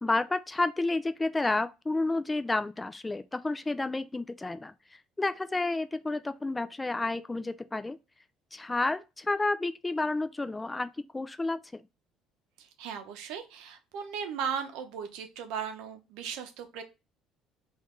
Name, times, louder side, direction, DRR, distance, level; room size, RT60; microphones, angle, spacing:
voice 1, 0.0-8.0 8.5-11.8, left 2 dB, 20° left, 0.4 m, -31 dB
voice 2, 12.6-16.8, right 7 dB, 75° right, 0.7 m, -37 dB
3.5 x 2.5 x 3.7 m
hypercardioid pair, 65°, 0 cm